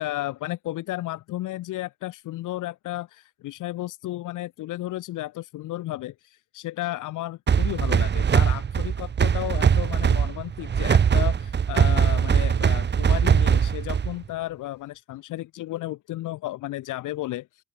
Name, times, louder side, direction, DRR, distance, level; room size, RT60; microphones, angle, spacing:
voice 1, 0.0-17.6, left 16 dB, 90° left, 5.9 m, -33 dB
sound 1, 7.5-14.2, right 7 dB, 35° right, 1.0 m, -21 dB
open air
cardioid pair, 90°, 30 cm